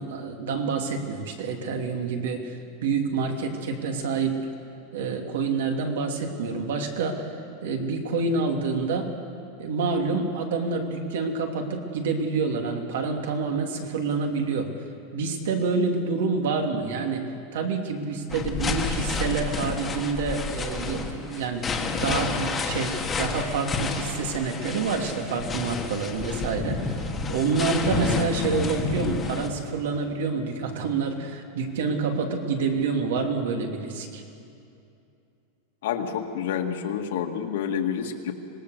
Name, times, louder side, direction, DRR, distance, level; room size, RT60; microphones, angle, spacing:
voice 1, 0.0-4.4 4.9-7.3 7.6-9.1 9.6-14.7 15.1-34.2, right 4 dB, 80° right, 3 dB, 2.8 m, -27 dB
sound 1, 18.3-29.5, left 4 dB, 15° left, 1.4 m, -30 dB
voice 2, 35.8-38.3, left 8 dB, 70° left, 4 dB, 1.8 m, -28 dB
25.0 x 19.0 x 6.6 m, 2.6 s
supercardioid pair, 175°, 0 cm